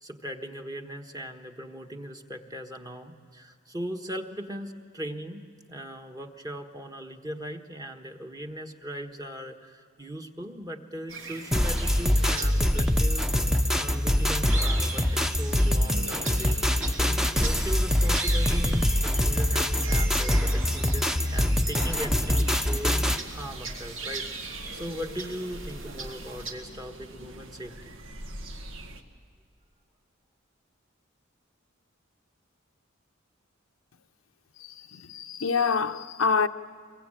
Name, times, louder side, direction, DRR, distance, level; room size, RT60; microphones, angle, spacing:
voice 1, 0.0-27.9, equal, 20° right, 1.4 m, -39 dB
sound 1, 11.1-26.5, right 3 dB, 70° right, 2.9 m, -40 dB
sound 2, 11.5-23.2, left 1 dB, 5° right, 0.8 m, -24 dB
sound 3, 15.4-29.0, right 1 dB, 85° right, 1.7 m, -44 dB
voice 2, 34.6-36.5, left 5 dB, 80° left, 0.7 m, -26 dB
24.5 x 23.0 x 8.9 m
head